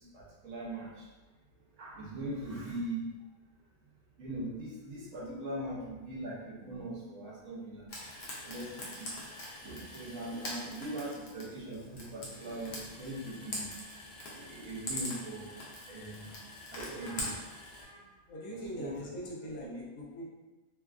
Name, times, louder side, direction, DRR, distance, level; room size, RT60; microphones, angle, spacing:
voice 1, 0.1-0.9 1.8-3.0 4.2-7.8 8.4-8.9 9.6-13.7 14.3-15.5 15.9-16.3 16.7-17.4 18.5-19.0 19.6-19.8, right 1 dB, 65° right, -4 dB, 1.0 m, -40 dB
Frying (food), 7.9-17.8, left 1 dB, 60° left, 0.8 m, -43 dB
voice 2, 18.3-20.2, equal, 80° left, -3 dB, 1.2 m, -42 dB
3.2 x 2.3 x 2.4 m, 1.1 s
omnidirectional pair, 1.5 m